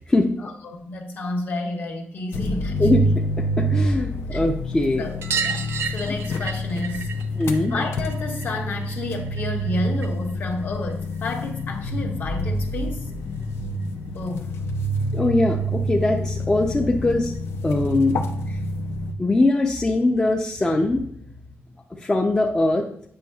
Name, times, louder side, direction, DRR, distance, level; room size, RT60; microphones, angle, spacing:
voice 1, 0.4-3.1 4.3-4.4 5.0-5.2 5.4-7.2 7.7-13.1 14.1-14.5 18.5-18.6, left 2 dB, 50° left, 2 dB, 0.9 m, -31 dB
sound 1, 2.3-19.1, equal, 75° left, 0.6 m, -27 dB
voice 2, 3.6-5.1 7.4-7.8 15.1-17.3 17.6-18.2 19.2-21.0 22.0-22.8, left 2 dB, 15° left, 1 dB, 0.4 m, -21 dB
sound 2, 5.2-10.3 10.6-11.7 13.1-13.2 13.4-13.5 13.8-13.9 15.2-15.3 15.6-15.7 16.0-16.1 17.3-17.4 18.2-18.3, right 6 dB, 70° right, 0.5 m, -33 dB
7.6 x 5.4 x 2.3 m, 0.65 s
wide cardioid pair, 175°, 4 cm